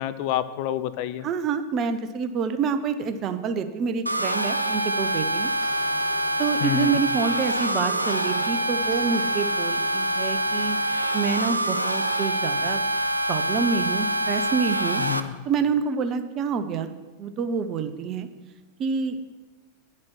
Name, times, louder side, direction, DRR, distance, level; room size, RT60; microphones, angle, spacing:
voice 1, 0.0-1.3 6.6-7.0 15.0-15.3, left 12 dB, 45° left, 13 dB, 0.5 m, -28 dB
voice 2, 1.2-5.5 6.4-12.8 13.3-15.0 15.5-16.9 17.2-18.3 18.8-19.2, right 6 dB, 30° right, 10 dB, 0.8 m, -27 dB
sound 1, 4.1-15.2, right 1 dB, 85° right, 0.5 m, -25 dB
sound 2, 5.6-12.3, equal, 10° right, 3.9 m, -47 dB
9.7 x 7.4 x 6.2 m, 1.2 s
figure-of-eight pair, 90°, 0 cm